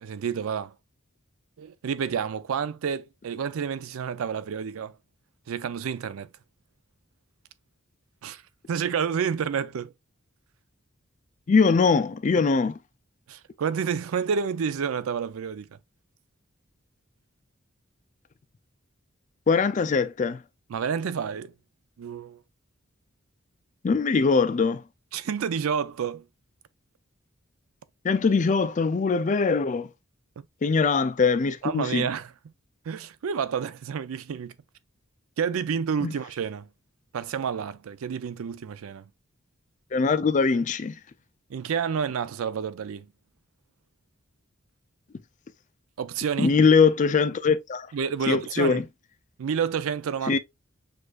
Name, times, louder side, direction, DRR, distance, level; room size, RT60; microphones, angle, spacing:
voice 1, 0.0-0.7 1.6-5.0 5.5-6.3 8.2-8.4 8.7-9.9 13.3-15.8 20.7-21.5 22.0-22.4 25.1-26.2 31.6-32.3 32.9-34.5 35.4-36.7 37.1-39.1 41.5-43.1 46.0-46.6 47.9-48.8 49.4-50.4, right 7 dB, 80° right, 0.4 m, -29 dB
voice 2, 11.5-12.8 19.5-20.4 23.8-24.8 28.0-29.9 30.6-32.1 36.0-36.1 39.9-40.9 46.4-47.9 48.3-48.8 50.3-50.4, left 4 dB, 35° left, 0.3 m, -22 dB
6.4 x 2.6 x 2.3 m
head